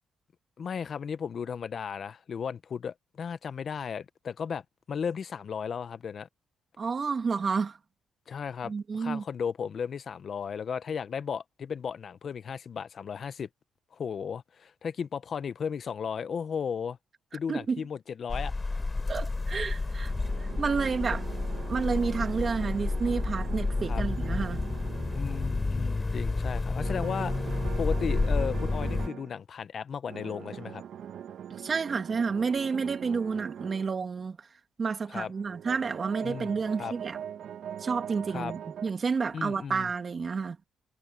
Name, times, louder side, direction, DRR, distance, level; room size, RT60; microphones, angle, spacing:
voice 1, 0.6-6.3 8.3-13.5 13.9-17.0 17.3-18.5 20.4-20.6 23.9-24.0 25.1-27.5 27.8-30.8 35.1-35.3 36.2-36.5 36.8-36.9 38.3-38.5 39.3-39.9, left 7 dB, 50° left, 0.9 m, -35 dB
voice 2, 6.8-7.8 8.6-9.2 17.5-17.8 19.1-20.1 20.4-21.3 21.7-24.6 31.6-34.4 34.8-37.2 37.8-40.6, right 5 dB, 40° right, 2.6 m, -30 dB
sound 1, 18.3-29.1, left 3 dB, 25° left, 3.5 m, -30 dB
sound 2, 19.8-25.9 26.8-29.3 30.1-33.9 35.2-38.9, right 9 dB, 70° right, 1.1 m, -42 dB
cardioid pair, 90°, 0 cm